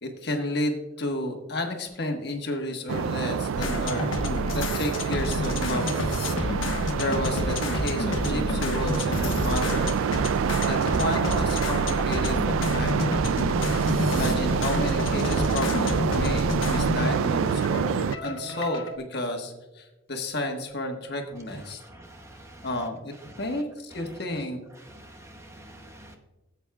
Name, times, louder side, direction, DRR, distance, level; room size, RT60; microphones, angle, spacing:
voice 1, 0.0-4.2 4.5-6.1 6.9-9.9 10.7-13.6 14.1-21.8 22.6-24.6, left 1 dB, 50° left, 3 dB, 1.4 m, -32 dB
sound 1, 2.9-18.2, right 7 dB, 85° right, 0.3 m, -27 dB
sound 2, 3.6-19.0, left 2 dB, 75° left, 1.2 m, -29 dB
voice 2, 21.8-22.7 23.5-23.6 24.8-26.2, right 1 dB, 15° right, 4 dB, 0.7 m, -47 dB
16.5 x 8.2 x 2.3 m, 1.1 s
head